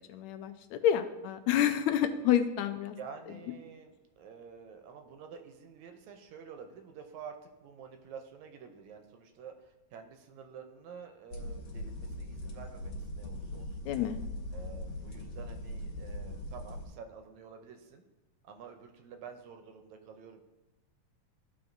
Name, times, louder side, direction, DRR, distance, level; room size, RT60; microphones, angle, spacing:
voice 1, 0.1-3.0 13.9-14.2, left 10 dB, 80° left, 8 dB, 1.8 m, -28 dB
voice 2, 3.0-13.9 14.5-18.0 18.4-20.4, right 6 dB, 80° right, 5 dB, 2.0 m, -49 dB
sound 1, 11.3-16.9, left 1 dB, 60° left, 2.2 m, -40 dB
14.0 x 4.7 x 2.6 m, 1.1 s
omnidirectional pair, 3.4 m